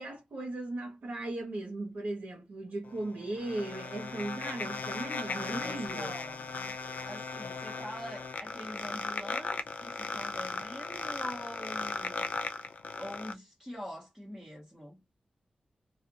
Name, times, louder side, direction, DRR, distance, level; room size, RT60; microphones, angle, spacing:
voice 1, 0.0-6.2, right 2 dB, 80° right, 1.0 m, -37 dB
sound 1, 2.9-13.3, left 4 dB, 75° left, 0.4 m, -37 dB
voice 2, 5.3-6.7 7.0-12.7 13.0-15.0, equal, 5° right, 1.0 m, -44 dB
2.4 x 2.4 x 2.6 m
wide cardioid pair, 150°, 3 cm